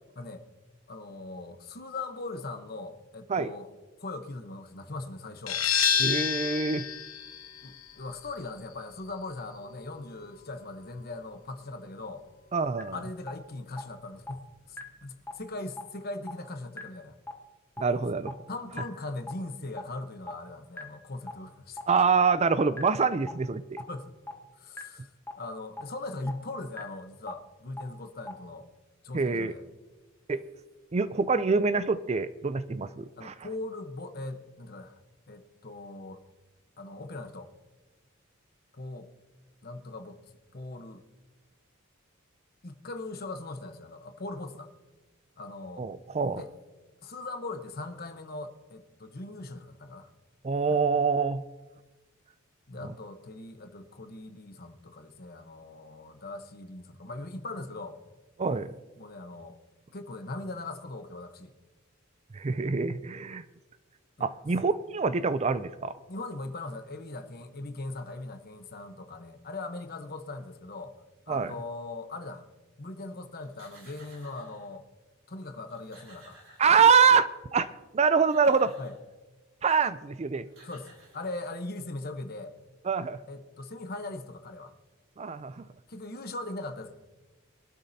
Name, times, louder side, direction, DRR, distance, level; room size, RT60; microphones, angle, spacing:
voice 1, 0.9-3.7 4.0-5.6 7.6-12.2 12.9-17.1 18.5-21.8 23.9-24.1 24.5-25.1 25.4-28.7 29.0-29.6 33.2-35.0 35.3-36.2 36.8-37.5 38.7-39.1 39.6-40.2 40.5-41.0 42.6-44.7 45.4-45.9 46.3-46.5 47.0-50.1 50.7-50.8 52.7-58.0 59.0-59.6 59.9-61.5 64.2-64.3 66.1-70.9 71.3-72.4 72.8-74.8 75.3-76.4 78.8-78.9 80.6-82.5 83.3-84.7 85.9-86.9, left 2 dB, 45° left, 8 dB, 1.0 m, -40 dB
sound 1, 5.5-10.9, left 8 dB, 75° left, 1.2 m, -31 dB
voice 2, 6.0-6.9 12.5-13.0 17.8-18.4 21.9-23.8 29.1-29.5 30.3-30.4 30.9-33.3 45.8-46.4 50.4-51.4 58.4-58.7 62.3-63.4 64.2-66.0 71.3-71.5 76.6-78.7 79.6-80.5 82.9-83.2 85.2-85.6, right 5 dB, 30° right, 14 dB, 0.4 m, -25 dB
sound 2, 12.8-12.9 13.3-13.4 13.8-13.9 14.3-14.4 14.8-14.9 15.3-15.4 15.8-15.9 16.3-16.4 16.8-16.9 17.3-17.4 17.8-17.9 18.3-18.4 18.8-18.9 19.3-19.4 19.8-19.9 20.3-20.4 20.8-20.9 21.3-21.4 21.8-21.9 22.3-22.4 22.8-22.9 23.3-23.4 23.8-23.9 24.3-24.4 24.8-24.9 25.3-25.4 25.8-25.9 26.3-26.4 26.8-26.9 27.3-27.4 27.8-27.9 28.3-28.4, left 1 dB, 10° left, 1.2 m, -37 dB
sound 3, 73.4-74.7 75.4-75.5 75.7-77.3 77.9-79.1 80.1-80.2 80.5-81.7, right 2 dB, 65° right, 4.4 m, -55 dB
22.0 x 12.5 x 2.8 m, 1.2 s
head